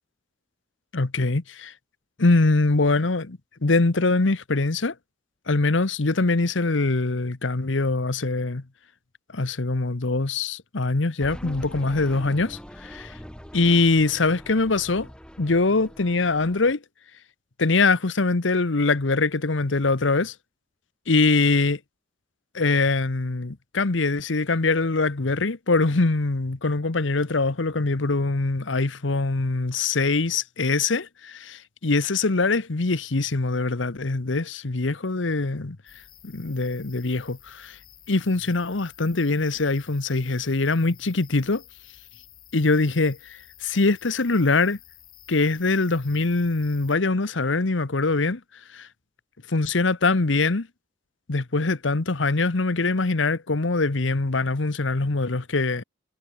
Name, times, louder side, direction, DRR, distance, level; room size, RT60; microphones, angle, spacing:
voice 1, 0.9-1.7 2.2-4.9 5.5-8.6 9.3-13.1 13.5-15.1 15.4-16.8 17.6-20.3 21.1-21.8 22.5-35.8 36.2-37.8 38.1-41.6 42.5-44.8 45.3-48.4 48.7-48.9 49.5-50.7 51.3-55.8, left 3 dB, 80° left, 1.1 m, -23 dB
sound 1, 11.2-16.7, equal, 5° left, 5.5 m, -42 dB
sound 2, 35.9-47.0, left 11 dB, 50° left, 4.9 m, -51 dB
head